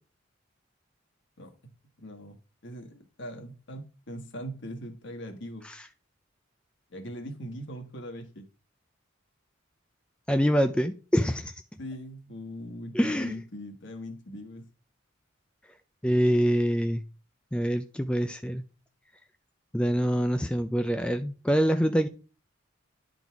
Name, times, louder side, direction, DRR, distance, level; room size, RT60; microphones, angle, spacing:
voice 1, 2.0-2.4 2.6-5.7 6.9-8.4 11.8-14.7, equal, 60° left, 6 dB, 1.5 m, -40 dB
voice 2, 10.3-11.5 12.9-13.3 16.0-17.0 17.5-18.6 19.7-22.1, equal, 5° left, 7 dB, 0.4 m, -25 dB
10.5 x 4.0 x 4.7 m, 0.34 s
head